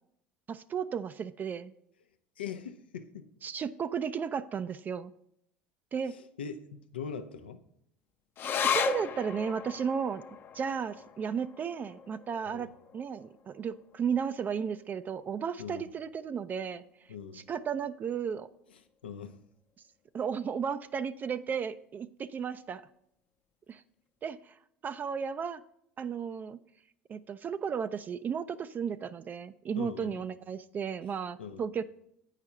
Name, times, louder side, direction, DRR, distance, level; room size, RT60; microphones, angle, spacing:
voice 1, 0.5-1.7 3.4-5.1 5.9-6.1 8.6-10.2 10.5-18.5 20.1-22.8 23.7-23.8 24.2-25.6 26.0-26.6 27.1-31.8, right 7 dB, 35° right, 0.3 m, -34 dB
voice 2, 2.4-3.3 6.1-7.6 12.5-12.7 15.6-15.9 17.1-17.5 18.7-19.4 29.8-30.2 31.4-31.6, left 7 dB, 90° left, 0.6 m, -42 dB
sound 1, 8.4-15.1 15.5-15.6 15.9-16.5 17.1-17.2, left 7 dB, 40° left, 0.6 m, -37 dB
8.8 x 4.9 x 5.7 m
hypercardioid pair, 75°, 5 cm